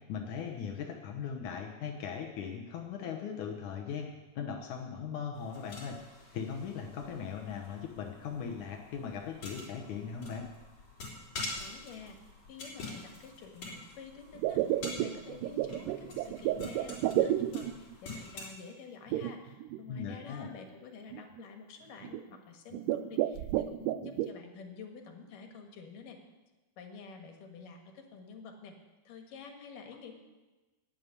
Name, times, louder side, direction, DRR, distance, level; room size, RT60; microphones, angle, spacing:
voice 1, 0.1-4.1 4.4-6.0 6.3-10.5 19.9-20.5, left 7 dB, 75° left, 2 dB, 2.4 m, -39 dB
sound 1, 5.3-18.5, left 2 dB, 55° left, 4.9 m, -46 dB
voice 2, 11.6-12.2 12.5-26.2 26.8-28.8 29.0-30.2, left 5 dB, 90° left, 4 dB, 3.2 m, -49 dB
sound 2, 14.4-17.9 19.1-19.8 20.5-20.6 21.1-21.4 22.0-22.3 22.7-24.3, right 13 dB, 85° right, 2.1 m, -31 dB
12.5 x 8.3 x 9.8 m, 1.2 s
omnidirectional pair, 3.7 m